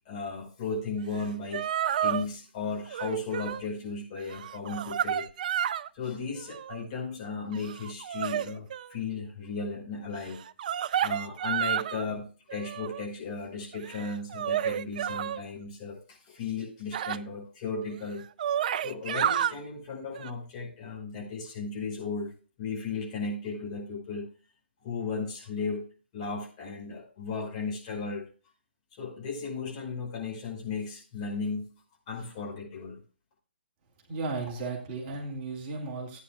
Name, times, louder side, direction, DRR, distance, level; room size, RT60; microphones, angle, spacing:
voice 1, 0.1-1.7 2.0-5.3 5.9-10.4 11.0-18.2 18.8-22.3 22.6-24.3 24.8-25.9 26.1-28.3 28.9-31.7 32.1-33.0, left 4 dB, 35° left, -1 dB, 5.4 m, -35 dB
sound 1, 1.2-1.3 1.5-2.3 2.9-3.6 4.2-5.9 6.3-6.8 7.5-8.9 10.3-12.0 12.5-13.1 13.7-15.4 16.9-17.2 17.8-17.9 18.2-19.5 20.1-20.3, right 10 dB, 45° right, 0.4 m, -30 dB
voice 2, 34.1-36.2, right 3 dB, 30° right, 0 dB, 2.3 m, -35 dB
16.0 x 9.5 x 2.3 m, 0.36 s
figure-of-eight pair, 135°, 6 cm